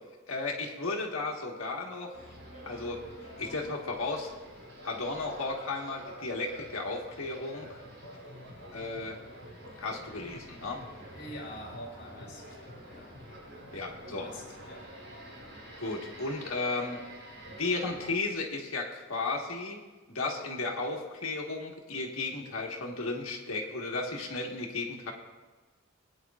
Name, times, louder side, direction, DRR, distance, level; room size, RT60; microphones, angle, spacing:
voice 1, 0.3-2.1 2.6-3.0 3.4-4.3 4.8-7.7 8.7-9.2 9.8-10.8 13.7-14.3 15.8-17.0 17.5-19.8 20.1-25.1, left 3 dB, 90° left, 0 dB, 1.5 m, -34 dB
sound 1, 2.1-18.1, equal, 80° right, 3.6 m, -47 dB
voice 2, 11.1-13.2 13.4-13.7 14.0-14.9, equal, 60° left, -1 dB, 2.6 m, -46 dB
19.5 x 9.3 x 2.4 m, 1.3 s
head